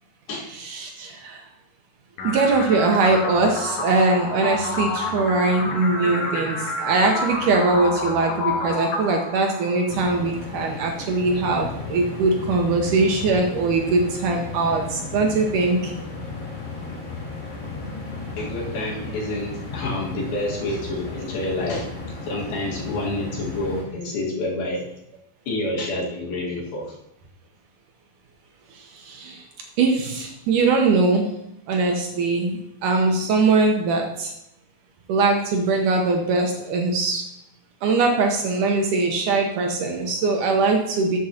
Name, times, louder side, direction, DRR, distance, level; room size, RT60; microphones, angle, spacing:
voice 1, 0.3-1.4 2.2-15.9 28.7-29.4 29.8-31.3 31.7-34.3 35.1-37.2 37.8-41.2, right 3 dB, 70° right, 2 dB, 2.1 m, -21 dB
sound 1, 2.2-10.2, left 3 dB, 60° left, 2.3 m, -29 dB
sound 2, 9.9-23.8, left 3 dB, 35° left, 2.2 m, -34 dB
voice 2, 18.4-24.8 25.5-27.0, left 2 dB, 75° left, -2 dB, 3.6 m, -28 dB
12.5 x 7.3 x 2.8 m, 0.83 s
omnidirectional pair, 4.3 m